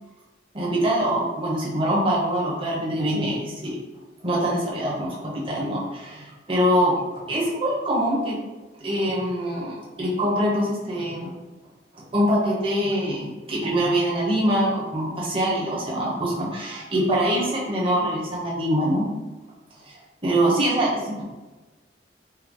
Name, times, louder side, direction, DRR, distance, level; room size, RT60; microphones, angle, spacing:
voice 1, 0.5-3.8 4.2-8.4 8.8-11.3 11.9-19.1 19.8-21.2, right 1 dB, 30° right, -5 dB, 1.1 m, -24 dB
4.4 x 2.2 x 3.8 m, 1.2 s
head